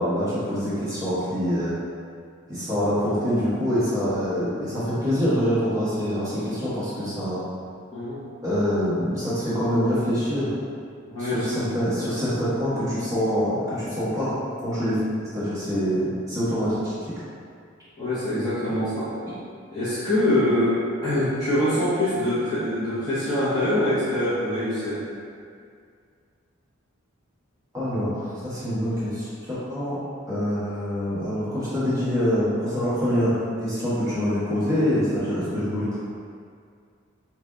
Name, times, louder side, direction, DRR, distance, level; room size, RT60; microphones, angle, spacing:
voice 1, 0.0-1.7 2.5-7.4 8.4-10.5 11.2-15.0 15.3-17.1 18.7-18.8 27.7-30.0 30.3-36.0, equal, 15° right, -13 dB, 1.4 m, -25 dB
voice 2, 7.9-8.2 11.1-11.7 18.0-19.1 19.7-20.8 21.0-25.0, left 1 dB, 20° left, -14 dB, 0.9 m, -24 dB
3.3 x 2.4 x 3.8 m, 2.2 s
head